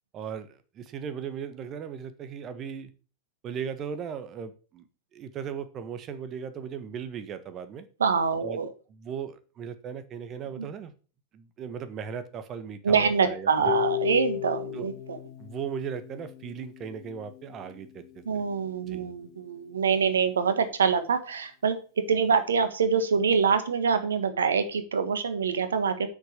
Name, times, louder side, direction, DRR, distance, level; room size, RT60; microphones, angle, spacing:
voice 1, 0.1-2.9 3.4-4.9 5.1-7.9 8.4-10.9 11.3-13.7 14.7-14.9 15.4-18.5 18.9-19.1, right 7 dB, 30° right, 12 dB, 1.4 m, -37 dB
voice 2, 8.0-8.7 10.6-10.7 12.8-15.2 18.2-21.8 22.1-26.1, right 6 dB, 70° right, 11 dB, 1.4 m, -25 dB
Harp, 13.6-19.7, left 16 dB, 40° left, 1.7 m, -36 dB
8.1 x 6.5 x 6.6 m, 0.36 s
figure-of-eight pair, 90°, 0 cm